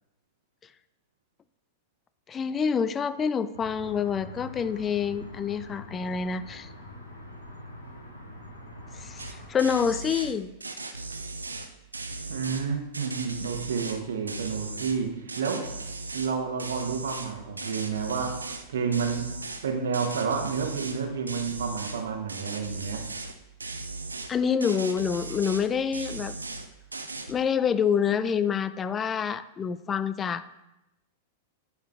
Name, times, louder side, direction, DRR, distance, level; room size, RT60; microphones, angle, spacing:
voice 1, 2.3-6.7 8.9-10.5 24.3-26.4 27.3-30.4, left 7 dB, 25° left, 14 dB, 0.4 m, -27 dB
sound 1, 3.5-9.5, left 1 dB, 85° left, 1.7 m, -44 dB
sound 2, 9.2-9.3 9.6-10.3 10.6-12.6 12.9-14.0 14.3-15.0 15.3-16.3 16.6-18.6 18.9-19.6 19.9-21.0 21.3-22.0 22.3-23.3 23.6-24.3 24.6-25.7 25.9-26.7 26.9-27.3, right 3 dB, 85° right, 0.6 m, -37 dB
voice 2, 12.3-15.7 16.1-18.4 18.7-19.3 19.6-23.1, right 5 dB, 70° right, 4 dB, 1.1 m, -30 dB
10.5 x 4.7 x 3.5 m, 0.94 s
figure-of-eight pair, 95°, 0 cm